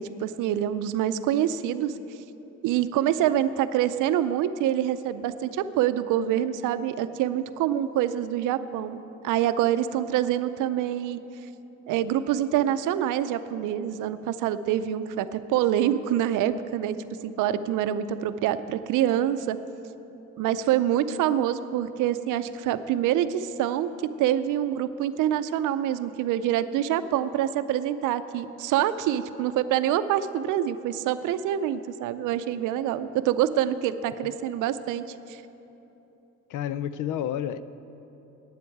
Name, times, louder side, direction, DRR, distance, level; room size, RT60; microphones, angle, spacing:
voice 1, 0.0-1.9 2.6-11.2 11.9-17.0 17.2-19.6 20.4-23.9 24.2-35.4, right 11 dB, 90° right, 13 dB, 0.5 m, -26 dB
voice 2, 36.5-37.6, left 10 dB, 85° left, 15 dB, 0.5 m, -30 dB
9.5 x 7.8 x 9.1 m, 3.0 s
cardioid pair, 90°, 30 cm